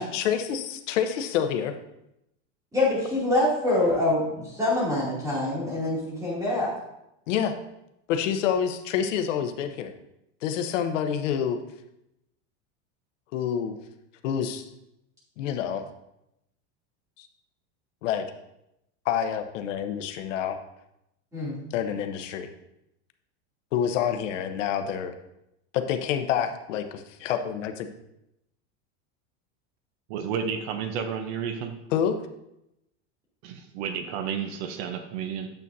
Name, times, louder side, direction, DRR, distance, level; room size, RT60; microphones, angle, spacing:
voice 1, 0.0-1.7 7.3-7.6 8.1-9.9 10.4-11.6 13.3-13.8 14.2-14.7 15.4-15.8 17.2-17.3 18.0-18.2 19.0-20.6 21.7-22.5 23.7-25.1 25.7-27.9 31.9-32.1, left 8 dB, 90° left, 7 dB, 0.9 m, -27 dB
voice 2, 2.7-6.7 21.3-21.5, left 1 dB, 10° right, -6 dB, 2.8 m, -25 dB
voice 3, 30.1-31.8 33.4-35.5, right 7 dB, 60° right, 8 dB, 0.8 m, -31 dB
9.1 x 7.3 x 2.7 m, 0.85 s
supercardioid pair, 170°, 36 cm